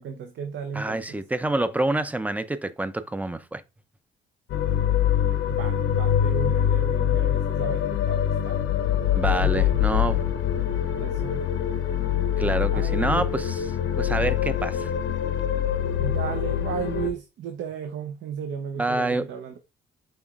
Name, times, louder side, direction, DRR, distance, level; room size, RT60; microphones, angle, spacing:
voice 1, 0.0-1.2 5.5-8.6 9.4-9.8 10.5-10.6 11.0-11.4 12.7-13.2 16.0-19.5, right 7 dB, 70° right, 0.6 m, -34 dB
voice 2, 0.7-3.6 9.1-10.2 12.4-13.7 14.0-14.9 18.8-19.2, right 2 dB, 10° right, 0.4 m, -27 dB
sound 1, 4.5-17.1, left 10 dB, 80° left, 0.7 m, -24 dB
5.4 x 3.1 x 2.4 m
cardioid pair, 90°, 20 cm